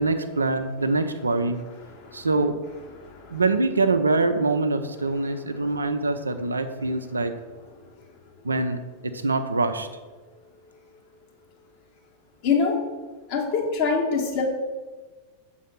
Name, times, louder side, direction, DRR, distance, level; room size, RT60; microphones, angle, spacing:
voice 1, 0.0-1.6 2.1-2.6 3.3-7.3 8.4-8.8 9.0-9.9, right 3 dB, 75° right, 9 dB, 0.5 m, -24 dB
voice 2, 3.0-3.4 12.4-12.8 13.3-14.4, left 5 dB, 45° left, -1 dB, 1.7 m, -25 dB
7.3 x 4.0 x 5.9 m, 1.3 s
figure-of-eight pair, 90°, 0 cm